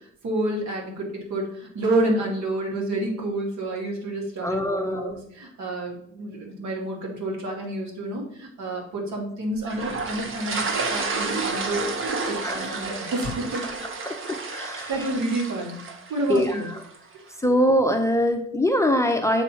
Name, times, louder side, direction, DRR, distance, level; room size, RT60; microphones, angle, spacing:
voice 1, 0.2-10.6 10.9-11.9 12.3-13.6 13.9-14.1 14.9-15.8 16.1-16.7, right 1 dB, 65° right, -1 dB, 2.2 m, -29 dB
voice 2, 4.4-5.2 12.4-12.8 14.0-14.9 16.3-16.6 17.4-19.4, equal, 10° left, 4 dB, 0.6 m, -23 dB
sound 1, 9.7-17.0, right 4 dB, 45° right, 1.0 m, -30 dB
7.1 x 2.9 x 5.6 m, 0.70 s
cardioid pair, 90°, 30 cm